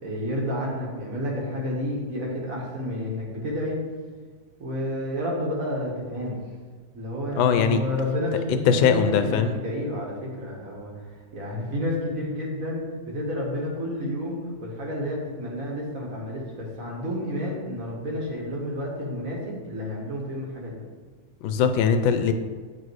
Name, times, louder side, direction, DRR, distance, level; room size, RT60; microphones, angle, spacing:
voice 1, 0.0-3.8 4.6-6.4 6.9-11.0 11.3-20.8, left 1 dB, 45° right, -2 dB, 1.8 m, -30 dB
voice 2, 7.3-7.8 8.7-9.5 21.4-22.3, left 6 dB, 90° left, 9 dB, 1.4 m, -21 dB
9.2 x 4.2 x 4.7 m, 1.5 s
omnidirectional pair, 2.1 m